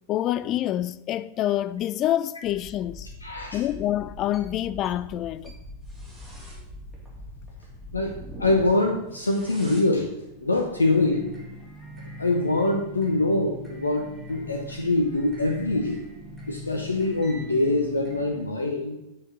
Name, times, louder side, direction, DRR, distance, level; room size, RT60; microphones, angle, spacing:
voice 1, 0.1-3.1 3.5-5.5, left 13 dB, 35° left, 0.3 m, -27 dB
sound 1, 2.5-18.4, left 1 dB, 10° right, 2.8 m, -42 dB
voice 2, 3.2-3.6 7.9-10.1 10.4-11.3 12.2-16.1 16.5-19.0, left 2 dB, 80° left, 0.7 m, -24 dB
8.4 x 5.2 x 6.3 m
figure-of-eight pair, 90°, 0 cm